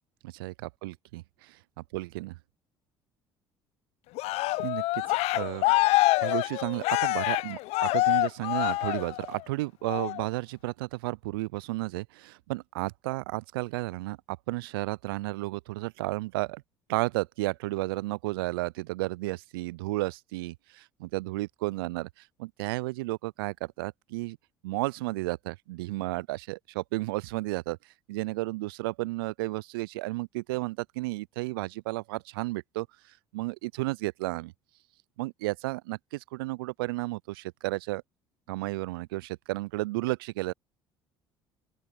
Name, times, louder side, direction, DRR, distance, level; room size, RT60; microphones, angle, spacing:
voice 1, 0.2-1.6 1.9-2.4 4.6-5.6 6.2-14.2 14.5-16.6 16.9-22.1 22.4-24.4 24.6-27.8 28.1-32.9 33.3-34.5 35.2-38.0 38.5-40.5, right 21 dB, 75° right, 0.4 m, -33 dB
Cheering, 4.2-9.4 9.9-10.2, left 20 dB, 65° left, 0.6 m, -26 dB
open air
hypercardioid pair, 60°, 12 cm